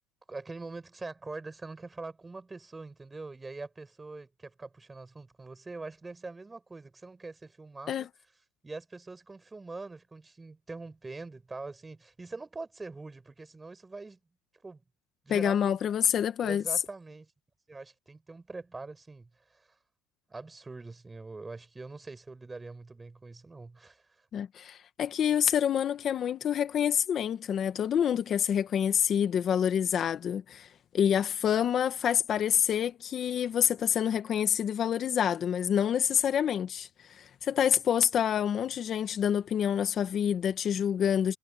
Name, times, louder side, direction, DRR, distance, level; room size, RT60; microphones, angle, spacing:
voice 1, 0.3-8.1 8.6-14.2 14.6-14.8 15.3-15.9 16.4-17.3 17.7-19.7 20.3-24.0, right 3 dB, 10° right, 7.3 m, -43 dB
voice 2, 15.3-16.6 24.3-30.7 30.9-41.4, left 9 dB, 30° left, 1.4 m, -27 dB
cardioid pair, 145°, 0 cm